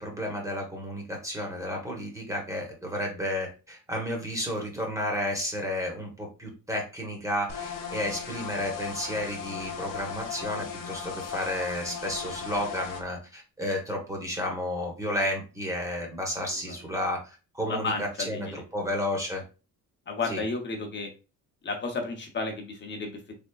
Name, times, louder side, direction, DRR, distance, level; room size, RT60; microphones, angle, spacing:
voice 1, 0.0-19.4 20.3-20.4, left 1 dB, 10° right, 1 dB, 0.9 m, -32 dB
sound 1, 7.5-13.0, left 7 dB, 70° left, 0.8 m, -37 dB
voice 2, 16.5-16.8 17.6-18.9 20.1-21.1 21.6-23.4, left 3 dB, 35° left, 4 dB, 0.8 m, -33 dB
3.5 x 3.5 x 2.3 m, 0.32 s
cardioid pair, 145°, 34 cm